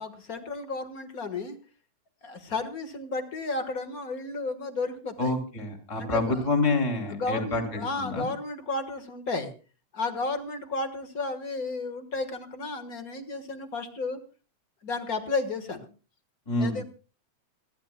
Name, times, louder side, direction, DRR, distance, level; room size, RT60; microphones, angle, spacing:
voice 1, 0.0-1.6 2.2-5.3 6.0-6.4 7.0-9.5 9.9-14.2 14.8-15.9 16.6-16.8, left 3 dB, 40° left, 8 dB, 1.3 m, -33 dB
voice 2, 5.2-8.3 16.5-16.8, left 2 dB, 10° left, 3 dB, 2.2 m, -27 dB
28.0 x 11.5 x 2.2 m, 0.33 s
omnidirectional pair, 3.4 m